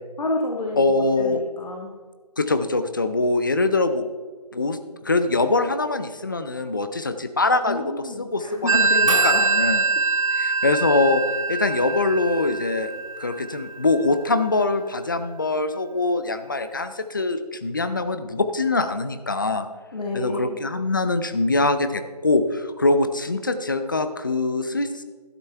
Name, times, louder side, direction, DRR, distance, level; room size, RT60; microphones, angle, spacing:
voice 1, 0.2-0.8 1.2-1.9 7.7-9.4 19.9-20.6, left 2 dB, 70° left, -1 dB, 1.6 m, -29 dB
voice 2, 0.8-1.4 2.4-4.0 4.5-4.8 5.0-7.9 8.2-9.8 10.4-11.2 11.5-12.9 13.2-19.7 20.1-25.0, left 3 dB, 30° left, 10 dB, 0.5 m, -23 dB
Telephone, 8.7-14.0, right 4 dB, 50° right, 0.8 m, -23 dB
12.0 x 10.0 x 3.4 m, 1.5 s
figure-of-eight pair, 170°, 21 cm